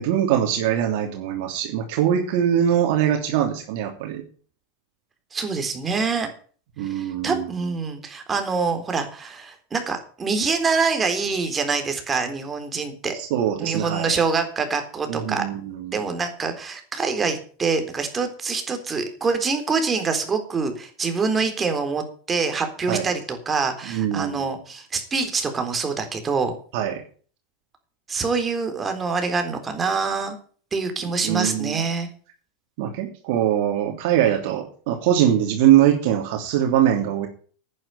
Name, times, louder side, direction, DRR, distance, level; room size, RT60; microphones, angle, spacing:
voice 1, 0.0-4.2 6.8-7.5 13.1-14.2 15.1-16.0 22.9-23.1 23.9-24.5 26.7-27.0 31.2-31.8 32.8-37.3, right 10 dB, 65° right, 2 dB, 3.0 m, -22 dB
voice 2, 5.3-6.3 6.8-13.2 13.6-15.4 15.9-26.5 28.1-30.4 30.7-32.1, right 4 dB, 20° right, 6 dB, 3.8 m, -25 dB
10.5 x 9.8 x 6.8 m, 0.43 s
supercardioid pair, 120°, 0 cm